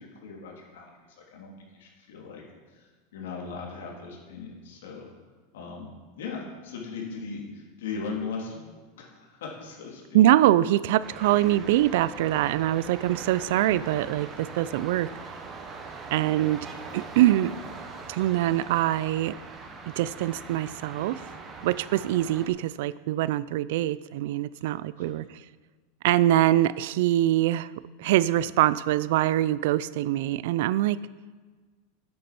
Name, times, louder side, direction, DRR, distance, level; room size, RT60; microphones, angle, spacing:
voice 1, 0.0-2.4 2.7-5.1 5.5-5.9 6.2-8.6 9.0-10.2 16.2-16.6 25.1-25.2, left 4 dB, 80° left, -1 dB, 3.0 m, -38 dB
voice 2, 10.1-15.1 16.1-16.7 16.9-17.6 18.1-19.4 20.0-21.2 21.6-25.2 26.0-27.7 28.0-31.0, right 14 dB, 50° right, 18 dB, 0.3 m, -23 dB
sound 1, 11.0-22.5, right 4 dB, 15° right, 0.9 m, -41 dB
9.4 x 8.6 x 6.0 m, 1.4 s
supercardioid pair, 180°, 0 cm